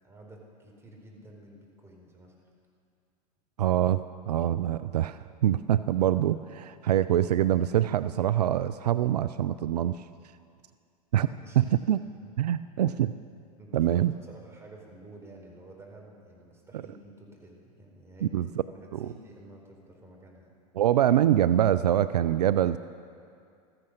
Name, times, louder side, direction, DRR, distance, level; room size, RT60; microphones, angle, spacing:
voice 1, 0.0-2.4 11.2-11.6 12.2-12.3 13.6-18.4 18.7-20.5, right 1 dB, 15° right, -1 dB, 4.3 m, -51 dB
voice 2, 3.6-10.1 11.1-11.3 11.6-12.0 12.4-13.1 13.7-14.1 18.3-18.5 18.9-19.1 20.8-22.8, right 11 dB, 80° right, 14 dB, 0.5 m, -24 dB
16.0 x 14.0 x 6.6 m, 2.4 s
hypercardioid pair, 90°, 20 cm